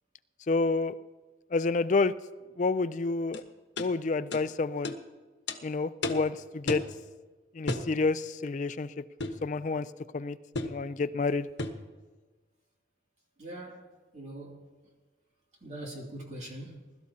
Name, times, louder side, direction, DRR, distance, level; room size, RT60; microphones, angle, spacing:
voice 1, 0.5-0.9 1.5-2.1 2.6-3.4 3.8-4.9 5.6-6.8 7.5-8.9 9.4-9.9 10.1-11.5, left 3 dB, 40° left, 0.4 m, -29 dB
sound 1, 3.3-3.4 3.8-3.9 4.3-4.4 4.8-5.0 5.5-5.6 6.0-6.3 6.7-6.9 7.7-7.9 9.2-9.4 10.5-10.8 11.6-11.8, left 2 dB, 70° left, 1.2 m, -33 dB
voice 2, 13.4-13.9 14.1-14.9 15.6-17.0, right 1 dB, 40° right, 2.6 m, -43 dB
20.5 x 13.0 x 2.8 m
head